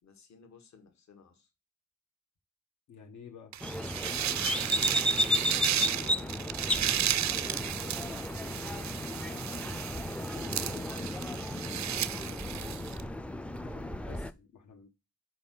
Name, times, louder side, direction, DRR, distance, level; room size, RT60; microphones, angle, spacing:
voice 1, 0.0-1.5 5.1-9.7 10.3-13.1, left 5 dB, 70° left, 1.6 m, -54 dB
voice 2, 2.9-3.5 13.6-14.9, left 6 dB, 85° left, 1.5 m, -51 dB
sound 1, 3.5-13.0, right 11 dB, 70° right, 0.5 m, -34 dB
sound 2, 3.6-14.3, left 1 dB, 5° left, 0.3 m, -33 dB
5.6 x 4.6 x 5.9 m
wide cardioid pair, 150°, 29 cm